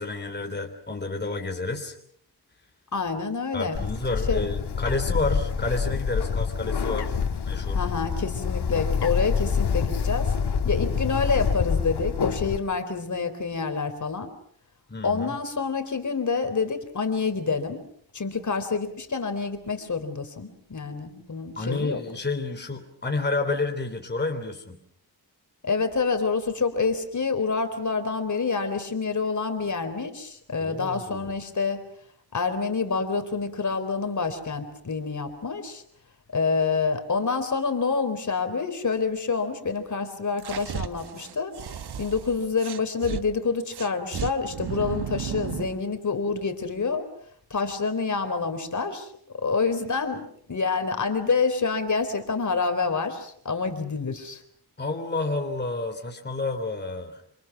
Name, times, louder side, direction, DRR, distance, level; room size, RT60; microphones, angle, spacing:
voice 1, 0.0-2.0 3.5-7.2 7.5-7.8 14.9-15.4 21.6-24.8 30.6-31.3 54.8-57.2, left 3 dB, 25° left, 3 dB, 3.4 m, -30 dB
voice 2, 2.9-3.8 4.3-4.5 7.7-10.3 10.6-14.3 15.0-17.8 18.1-22.0 25.6-31.8 32.3-35.8 36.3-41.6 42.0-47.0 47.5-50.2 50.5-54.4, left 4 dB, 50° left, 8 dB, 3.9 m, -27 dB
Bird, 3.7-12.6, left 6 dB, 85° left, 2.4 m, -26 dB
sound 1, 40.4-43.2 43.7-45.8, right 8 dB, 80° right, 1.3 m, -34 dB
28.0 x 27.5 x 6.0 m, 0.63 s
wide cardioid pair, 120°, 39 cm